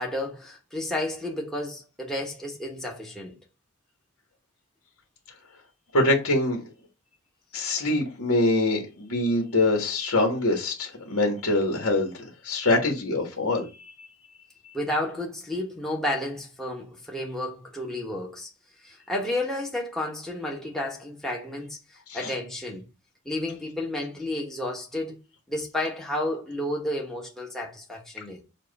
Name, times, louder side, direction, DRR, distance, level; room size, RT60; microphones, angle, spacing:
voice 1, 0.0-3.4 14.7-18.5 18.8-22.8 23.2-25.2 25.5-28.4, left 1 dB, ahead, 1.1 m, -31 dB
voice 2, 5.9-6.6 7.5-14.1 22.1-22.3, left 2 dB, 70° left, 1.5 m, -24 dB
7.4 x 2.5 x 5.2 m
head